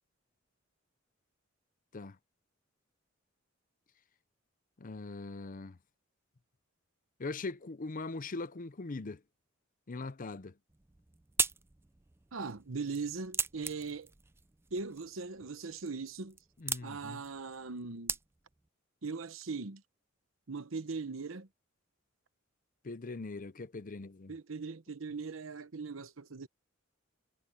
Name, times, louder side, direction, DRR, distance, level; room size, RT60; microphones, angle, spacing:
voice 1, 4.8-5.8 7.2-9.2 9.9-10.5 16.6-17.2 22.8-24.3, left 3 dB, 45° left, 0.7 m, -41 dB
sound 1, 10.7-18.7, right 5 dB, 10° right, 0.4 m, -40 dB
voice 2, 12.3-14.1 14.7-16.4 16.8-18.2 19.0-19.8 20.5-21.5 24.3-26.5, right 4 dB, 75° right, 1.0 m, -40 dB
head